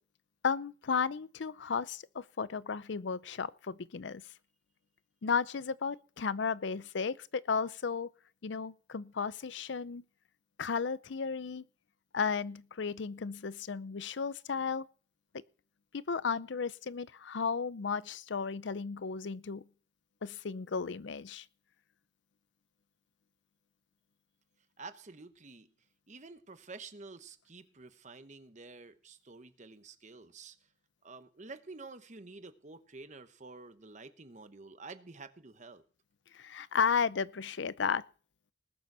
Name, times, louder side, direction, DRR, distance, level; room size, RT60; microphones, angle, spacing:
voice 1, 0.4-4.2 5.2-8.1 8.4-10.0 10.6-11.6 12.1-14.9 15.9-19.6 20.2-21.5 36.3-38.0, left 5 dB, 70° left, 0.5 m, -34 dB
voice 2, 24.8-25.7 26.1-30.6 31.0-35.8, right 3 dB, 40° right, 1.0 m, -49 dB
19.5 x 7.0 x 6.1 m
head